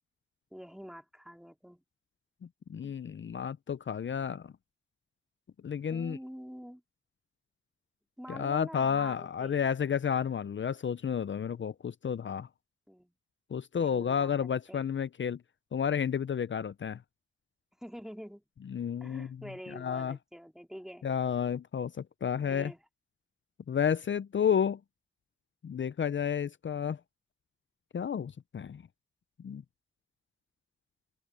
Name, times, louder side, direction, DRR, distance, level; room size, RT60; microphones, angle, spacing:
voice 1, 0.5-1.8 2.8-3.0 5.9-6.8 8.2-9.7 12.9-13.1 13.8-14.3 14.7-14.9 17.8-18.4 19.0-21.1 22.4-22.8, equal, ahead, 3.6 m, -46 dB
voice 2, 2.7-4.5 5.6-6.2 8.3-12.5 13.5-15.4 15.7-17.0 18.7-19.4 19.7-20.2 21.0-22.7 23.7-24.8 25.6-27.0 27.9-28.8 29.4-29.6, left 7 dB, 70° left, 0.4 m, -31 dB
open air
wide cardioid pair, 55°, 20 cm